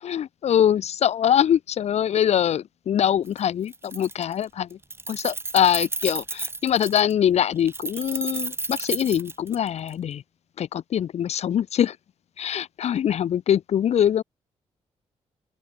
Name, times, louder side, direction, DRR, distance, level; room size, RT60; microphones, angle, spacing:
voice 1, 0.0-4.8 5.1-10.2 10.6-12.0 12.4-14.2, left 9 dB, 65° left, 0.7 m, -23 dB
Keys jangling, 3.3-3.4 3.7-4.4 4.7-7.1 7.7-9.9, right 3 dB, 20° right, 1.2 m, -32 dB
open air
cardioid pair, 85°, 12 cm